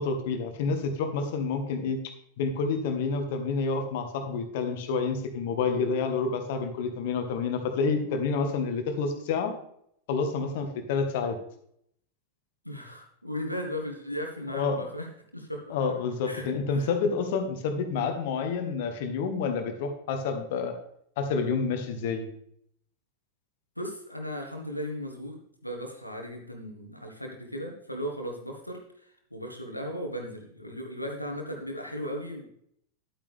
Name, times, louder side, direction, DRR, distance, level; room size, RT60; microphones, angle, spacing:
voice 1, 0.0-2.0 2.4-9.5 10.1-11.4 14.5-14.9 15.7-20.7 21.2-22.3, left 5 dB, 50° left, 7 dB, 1.5 m, -28 dB
voice 2, 12.6-15.7 16.2-16.9 23.8-28.8 29.3-32.5, equal, 90° left, 2 dB, 1.7 m, -36 dB
11.0 x 8.7 x 3.4 m, 0.69 s
figure-of-eight pair, 90°, 0 cm